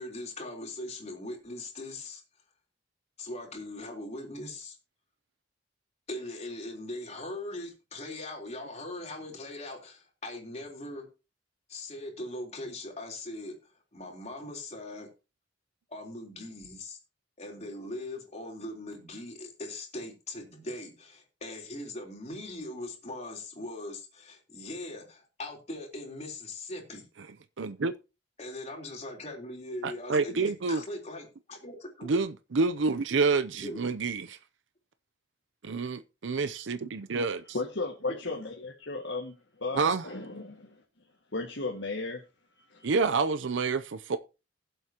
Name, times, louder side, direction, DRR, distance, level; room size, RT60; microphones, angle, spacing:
voice 1, 0.0-2.2 3.2-4.8 6.1-11.1 11.7-13.6 13.9-15.1 15.9-17.0 17.4-27.1 28.4-32.1 33.6-33.8, left 1 dB, 40° left, 3.6 m, -40 dB
voice 2, 27.6-27.9 29.8-30.8 32.0-34.4 35.6-37.4 39.7-40.1 42.8-44.2, right 4 dB, 85° right, 0.6 m, -28 dB
voice 3, 37.5-39.3 39.6-40.8 41.3-42.2 42.7-43.0, left 3 dB, 75° left, 1.8 m, -35 dB
20.0 x 7.9 x 2.9 m
head